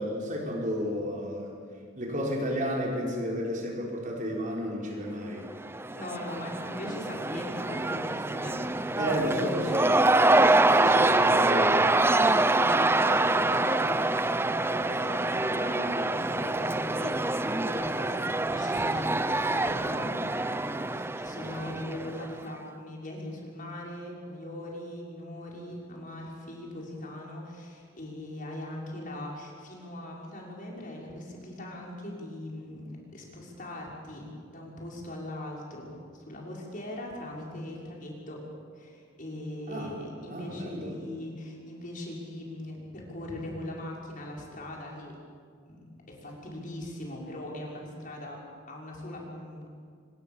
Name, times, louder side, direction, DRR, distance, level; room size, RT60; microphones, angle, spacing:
voice 1, 0.0-1.5 2.0-5.5 9.0-9.9 10.7-11.9 21.6-21.8 39.7-40.0 40.3-41.0, equal, 40° right, -1 dB, 5.3 m, -32 dB
Cheering / Crowd, 5.5-22.4, right 2 dB, 10° right, 0.6 m, -25 dB
voice 2, 5.9-9.7 12.2-38.4 38.7-45.2 45.7-48.4 48.7-49.7, left 1 dB, 45° left, -2 dB, 6.1 m, -40 dB
27.0 x 24.5 x 7.2 m, 2.1 s
head